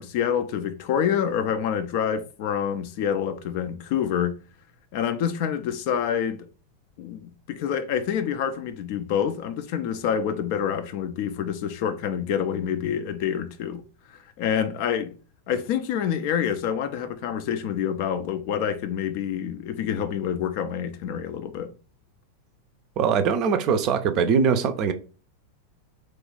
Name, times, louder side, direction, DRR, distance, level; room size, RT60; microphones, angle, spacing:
voice 1, 0.0-4.4 4.9-6.5 7.0-13.8 14.4-15.1 15.5-21.7, left 8 dB, 45° left, 0.4 m, -27 dB
voice 2, 23.0-24.9, right 6 dB, 40° right, 0.5 m, -22 dB
3.1 x 2.4 x 3.6 m
figure-of-eight pair, 90°, 0 cm